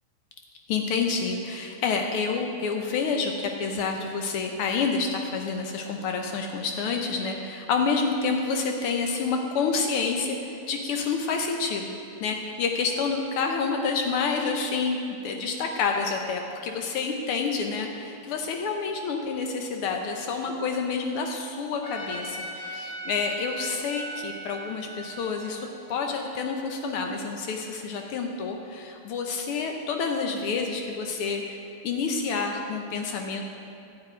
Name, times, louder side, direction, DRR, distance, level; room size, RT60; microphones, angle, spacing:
voice 1, 0.7-11.9 12.2-31.6 31.8-33.4, left 5 dB, 90° left, 3 dB, 1.2 m, -28 dB
Trumpet, 21.8-27.0, right 1 dB, 55° left, 2.4 m, -39 dB
11.5 x 5.8 x 9.1 m, 2.7 s
omnidirectional pair, 3.5 m